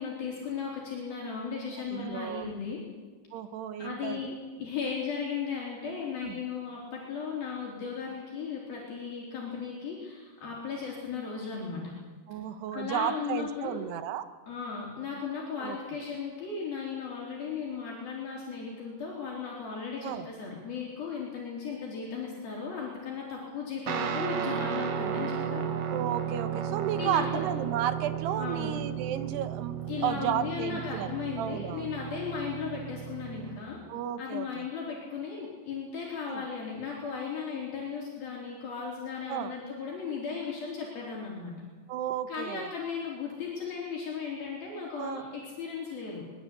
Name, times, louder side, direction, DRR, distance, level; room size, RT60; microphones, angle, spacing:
voice 1, 0.0-2.8 3.8-11.9 12.7-13.8 14.4-25.7 27.0-27.4 28.4-28.8 29.9-33.8 34.2-41.5 42.3-46.2, left 6 dB, 65° left, -3 dB, 5.6 m, -36 dB
voice 2, 1.8-2.5 3.3-4.3 6.2-6.4 12.3-14.2 15.6-15.8 20.0-20.3 25.9-29.8 30.0-31.9 33.9-34.7 36.3-36.4 39.3-39.5 41.9-42.7 45.0-45.2, right 10 dB, 85° right, 10 dB, 3.3 m, -33 dB
Guitar, 23.9-33.6, right 8 dB, 60° right, 3.0 m, -34 dB
24.0 x 20.5 x 8.5 m, 1.4 s
omnidirectional pair, 4.6 m